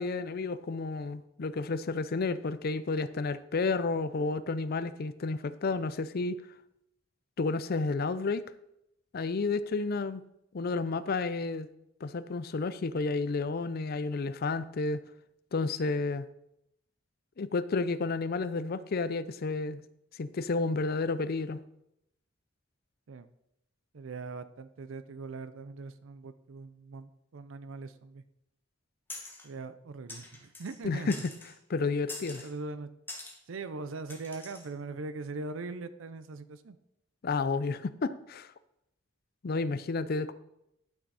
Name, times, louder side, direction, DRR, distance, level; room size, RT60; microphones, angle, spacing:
voice 1, 0.0-6.4 7.4-8.4 9.1-10.2 10.5-11.7 12.0-15.0 15.5-16.3 17.4-19.8 20.2-21.6 30.8-31.1 31.7-32.5 37.2-38.5 39.4-40.3, left 3 dB, 50° left, 14 dB, 0.5 m, -31 dB
voice 2, 23.9-28.2 29.4-31.2 32.4-32.9 33.5-36.8, right 3 dB, 85° right, 13 dB, 0.5 m, -41 dB
sound 1, 29.1-29.5 30.1-30.8 31.1-31.6 32.1-32.5 33.1-33.4 34.1-34.7, left 2 dB, 10° left, 1.4 m, -44 dB
11.5 x 5.9 x 4.1 m, 0.83 s
head